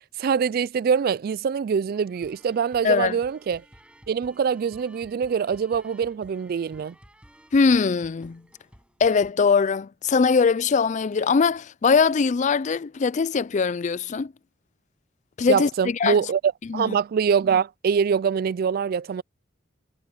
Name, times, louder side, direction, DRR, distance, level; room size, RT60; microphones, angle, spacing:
voice 1, 0.2-3.6 4.1-6.9 15.5-19.2, right 6 dB, 50° right, 0.3 m, -24 dB
sound 1, 1.9-9.3, equal, 5° right, 7.5 m, -54 dB
voice 2, 2.8-3.2 7.5-8.4 9.0-14.3 15.4-16.2 16.7-17.0, left 5 dB, 40° left, 0.4 m, -21 dB
head